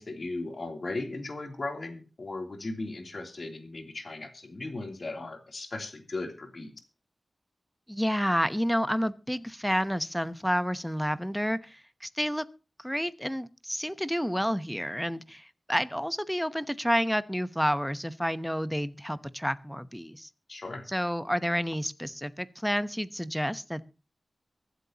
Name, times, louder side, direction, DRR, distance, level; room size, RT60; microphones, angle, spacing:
voice 1, 0.0-6.7 20.5-20.8, left 2 dB, 55° left, 4 dB, 3.1 m, -37 dB
voice 2, 7.9-12.4 12.8-20.3 20.9-23.9, equal, ahead, 14 dB, 0.9 m, -30 dB
24.0 x 8.1 x 2.9 m, 0.33 s
wide cardioid pair, 65°, 0 cm